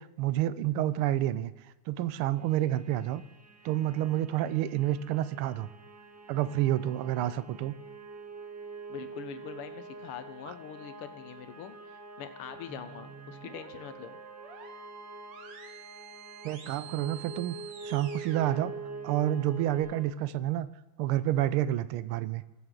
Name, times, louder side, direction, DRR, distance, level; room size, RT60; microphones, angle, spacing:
voice 1, 0.0-1.5 1.9-3.2 3.6-5.7 6.3-7.7 16.4-17.6 17.8-18.7 19.0-20.7 21.0-22.4, right 13 dB, 80° right, 15 dB, 1.5 m, -29 dB
sound 1, 2.4-20.0, right 3 dB, 10° right, 1.3 m, -46 dB
voice 2, 8.9-14.2, left 8 dB, 85° left, 10 dB, 1.8 m, -44 dB
sound 2, 12.7-19.8, right 8 dB, 60° right, 1.7 m, -48 dB
21.0 x 7.7 x 3.8 m, 1.1 s
omnidirectional pair, 2.4 m